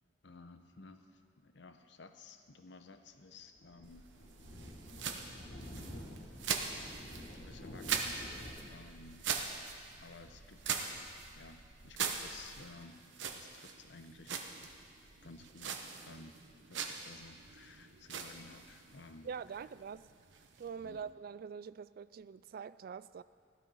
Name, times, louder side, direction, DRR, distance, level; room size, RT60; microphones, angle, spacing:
voice 1, 0.2-4.0 7.3-8.2 8.7-9.3 10.0-11.0 11.3-13.0 13.3-14.5 15.2-16.4 16.7-19.3 20.8-21.0, left 3 dB, 70° left, 8 dB, 0.9 m, -55 dB
Thunder, 3.1-12.3, left 1 dB, 85° left, 2.9 m, -51 dB
sound 1, 3.8-21.1, right 6 dB, 75° right, 1.0 m, -42 dB
voice 2, 19.2-20.1 20.6-23.2, right 6 dB, 50° right, 17 dB, 0.3 m, -44 dB
15.0 x 12.0 x 5.5 m, 2.2 s
head